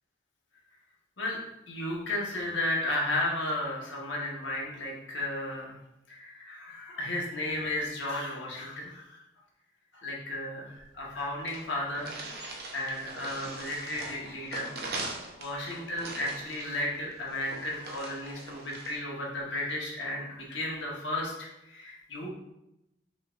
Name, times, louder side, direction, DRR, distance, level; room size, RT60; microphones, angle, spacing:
voice 1, 1.7-5.8 6.1-9.2 9.9-12.1 12.7-14.7 15.4-22.3, left 1 dB, 85° left, -3 dB, 1.3 m, -34 dB
sound 1, 10.8-10.9 11.1-11.2 11.5-19.0, right 2 dB, 55° right, 0.7 m, -41 dB
5.5 x 3.3 x 2.5 m, 0.89 s
head